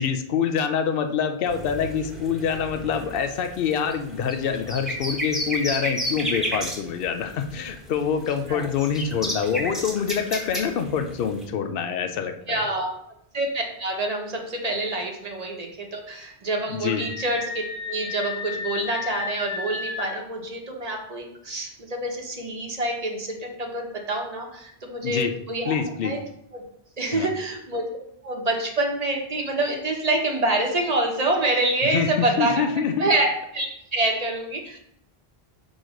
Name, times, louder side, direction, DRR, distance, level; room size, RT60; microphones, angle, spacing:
voice 1, 0.0-12.6 16.7-17.1 25.0-25.3 25.7-26.2 27.1-27.3 31.9-33.1, left 7 dB, 65° left, 8 dB, 0.8 m, -26 dB
sound 1, 1.5-11.4, equal, ahead, 1.3 m, -32 dB
voice 2, 12.5-12.9 13.3-17.6 17.9-25.7 26.0-26.2 26.5-26.6 27.0-27.8 28.2-32.6 33.0-33.7 33.9-34.8, right 2 dB, 40° right, 1 dB, 1.1 m, -26 dB
Screaming, 16.9-20.3, left 5 dB, 90° left, 1.0 m, -33 dB
6.3 x 3.1 x 5.1 m, 0.74 s
omnidirectional pair, 1.0 m